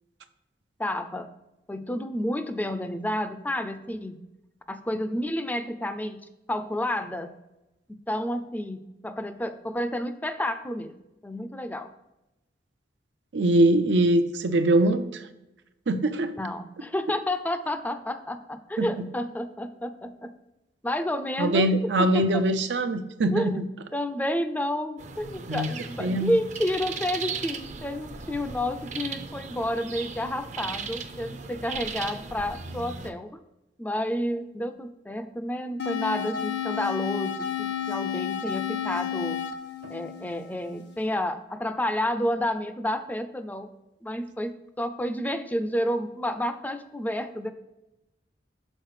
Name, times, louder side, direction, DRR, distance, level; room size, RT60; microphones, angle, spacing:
voice 1, 0.8-1.3 1.7-4.2 4.7-6.2 6.5-7.3 8.1-11.0 11.2-11.9 16.3-20.3 20.8-21.7 22.0-22.4 23.3-23.6 23.9-33.4 33.8-39.4 39.9-43.7 44.0-47.5, left 1 dB, 10° left, 10 dB, 0.4 m, -30 dB
voice 2, 13.3-15.2 15.9-16.3 18.8-18.9 21.4-23.6 25.5-25.7 26.0-26.3, right 1 dB, 90° right, 8 dB, 0.6 m, -22 dB
sound 1, 25.0-33.1, right 5 dB, 45° right, 0.6 m, -37 dB
sound 2, 35.8-40.8, left 9 dB, 75° left, 0.7 m, -31 dB
6.4 x 4.1 x 4.8 m, 0.95 s
head